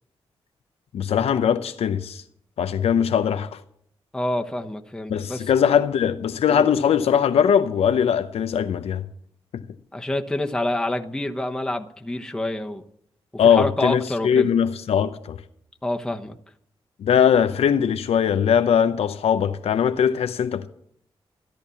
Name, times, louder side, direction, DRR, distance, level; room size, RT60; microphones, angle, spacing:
voice 1, 0.9-2.2 2.6-3.6 5.1-9.0 9.5-9.6 13.4-15.4 17.0-20.7, left 8 dB, 85° left, 0.7 m, -20 dB
voice 2, 4.1-5.5 6.5-6.7 9.9-12.8 13.4-14.5 15.8-16.4, left 1 dB, 5° left, 1.1 m, -27 dB
14.0 x 10.5 x 7.1 m
cardioid pair, 70°, 10 cm